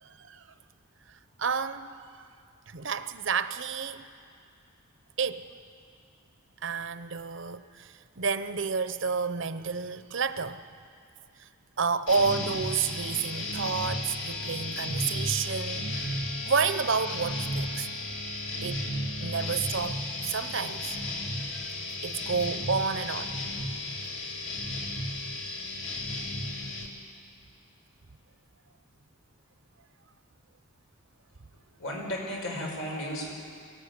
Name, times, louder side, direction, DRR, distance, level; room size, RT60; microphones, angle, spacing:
voice 1, 0.0-0.4 1.4-1.9 2.7-4.1 5.2-5.4 6.6-10.6 11.8-16.2 16.4-17.9 18.6-18.9 19.2-20.0 20.2-20.8 21.5-21.6 22.0-23.4, right 5 dB, 60° right, 12 dB, 0.7 m, -30 dB
sound 1, 12.1-26.9, left 1 dB, 60° left, 2.7 m, -34 dB
voice 2, 31.5-33.3, equal, 80° left, -1 dB, 5.5 m, -35 dB
24.0 x 15.0 x 9.6 m, 2.3 s
head